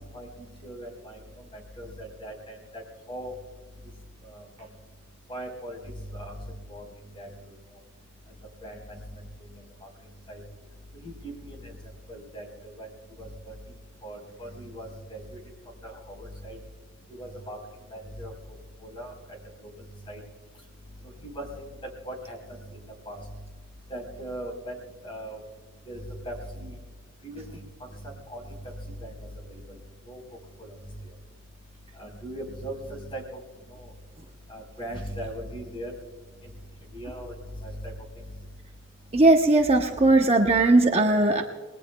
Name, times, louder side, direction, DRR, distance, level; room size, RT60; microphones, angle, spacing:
voice 1, 0.6-1.2 1.8-2.8 3.1-3.3 4.3-4.4 5.3-5.8 6.1-6.4 6.7-6.8 7.1-7.3 8.6-9.0 10.3-10.4 11.0-11.7 12.1-12.9 13.2-13.5 14.0-15.4 15.8-16.6 17.2-17.6 17.9-18.3 18.8-19.1 20.1-20.2 21.3-21.6 22.1-22.4 23.1-23.2 23.9-24.7 25.0-25.4 25.9-26.7 27.2-27.6 28.3-28.4 29.0-29.1 30.1-30.2 30.6-30.7 32.0-33.2 34.5-35.9 36.9-37.3 37.6-37.9, right 1 dB, 25° left, 1 dB, 4.1 m, -38 dB
voice 2, 39.1-41.4, right 2 dB, 30° right, 2 dB, 0.9 m, -19 dB
29.5 x 20.5 x 2.3 m, 1.4 s
head